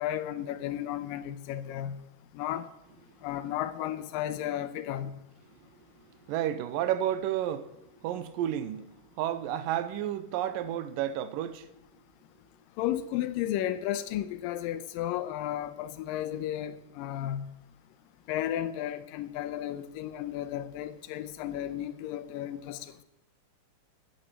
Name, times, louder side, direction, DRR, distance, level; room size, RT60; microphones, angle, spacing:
voice 1, 0.0-2.0 2.3-2.7 3.2-5.1 12.8-17.5 18.3-22.9, left 12 dB, 90° left, 2.4 m, -33 dB
voice 2, 6.3-7.7 8.0-8.9 9.2-11.7, right 11 dB, 90° right, 2.4 m, -31 dB
11.0 x 8.9 x 8.3 m
omnidirectional pair, 3.9 m